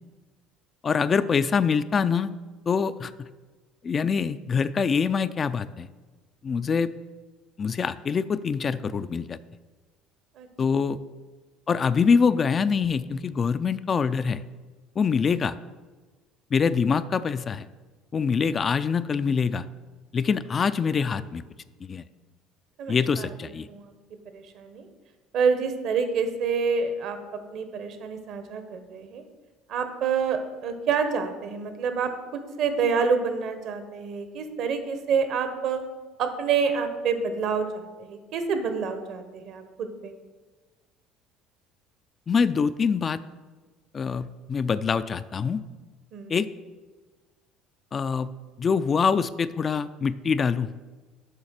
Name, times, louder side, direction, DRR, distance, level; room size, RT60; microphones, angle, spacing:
voice 1, 0.8-2.3 2.7-3.3 3.8-5.9 6.4-6.9 7.6-9.4 10.6-11.0 11.7-14.4 15.0-15.6 16.5-17.7 18.1-19.7 20.1-21.4 21.8-22.0 22.9-23.7 42.3-43.2 43.9-45.6 46.3-46.5 47.9-48.3 48.6-50.7, left 6 dB, 35° left, 14 dB, 0.3 m, -24 dB
voice 2, 22.8-23.3 23.7-23.9 24.3-24.9 25.3-29.2 29.7-35.8 36.2-40.1 46.1-46.4, right 5 dB, 60° right, 8 dB, 1.1 m, -28 dB
7.3 x 5.1 x 6.4 m, 1.3 s
supercardioid pair, 95°, 0 cm